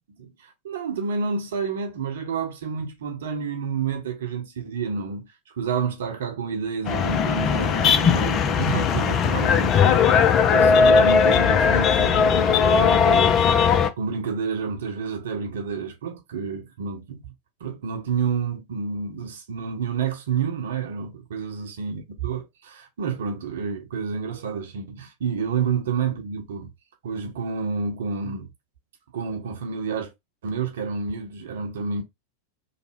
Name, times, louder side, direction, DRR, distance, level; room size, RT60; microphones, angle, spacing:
voice 1, 0.2-17.2 17.6-26.7 27.0-28.5 29.1-30.1 30.4-32.0, right 5 dB, 60° right, 0.8 m, -29 dB
sound 1, 6.9-13.9, left 6 dB, 30° left, 0.4 m, -18 dB
3.2 x 2.1 x 3.4 m
figure-of-eight pair, 90°, 0 cm